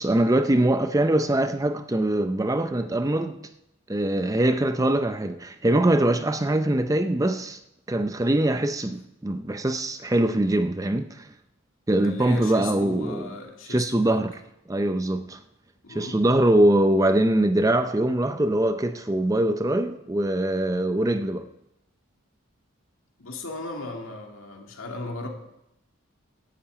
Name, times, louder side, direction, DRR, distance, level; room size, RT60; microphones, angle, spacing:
voice 1, 0.0-3.4 3.9-7.6 7.9-11.3 11.9-13.3 13.7-14.3 14.7-15.4 15.9-21.5, right 1 dB, 15° right, 0.5 m, -23 dB
voice 2, 12.0-14.2 15.8-16.2 23.2-25.3, left 2 dB, 70° left, 2.5 m, -36 dB
11.5 x 8.6 x 8.5 m
head